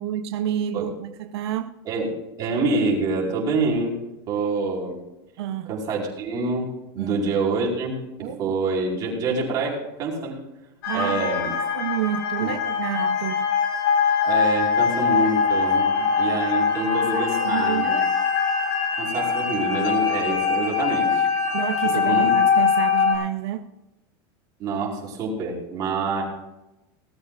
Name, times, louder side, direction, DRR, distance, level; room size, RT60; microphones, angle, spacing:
voice 1, 0.0-1.8 5.4-5.7 7.0-7.2 8.2-8.6 10.8-13.5 14.0-14.3 16.0-16.1 17.1-18.1 21.5-23.7, right 11 dB, 85° right, 0.8 m, -29 dB
voice 2, 2.4-4.0 4.3-5.0 5.6-10.4 10.9-11.5 12.4-12.5 14.2-15.9 16.2-18.0 19.0-21.3 21.9-22.3 24.6-26.2, right 3 dB, 30° right, 4.6 m, -26 dB
sound 1, 10.8-23.2, left 6 dB, 50° left, 3.6 m, -22 dB
20.0 x 13.0 x 2.5 m
supercardioid pair, 180°, 13 cm